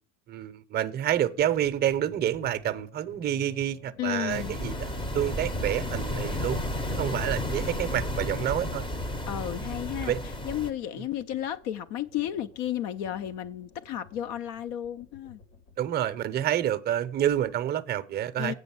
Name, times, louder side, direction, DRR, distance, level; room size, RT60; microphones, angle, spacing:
voice 1, 0.3-6.6 6.9-8.8 10.0-10.2 15.8-18.5, right 11 dB, 25° right, 0.6 m, -28 dB
sound 1, 1.0-16.3 16.6-17.6, left 2 dB, 80° left, 3.4 m, -53 dB
voice 2, 4.0-4.6 9.3-15.4 18.4-18.5, left 11 dB, 65° left, 0.5 m, -33 dB
sound 2, 4.3-10.7, left 1 dB, 15° left, 0.6 m, -32 dB
8.2 x 5.2 x 7.0 m
supercardioid pair, 120°, 37 cm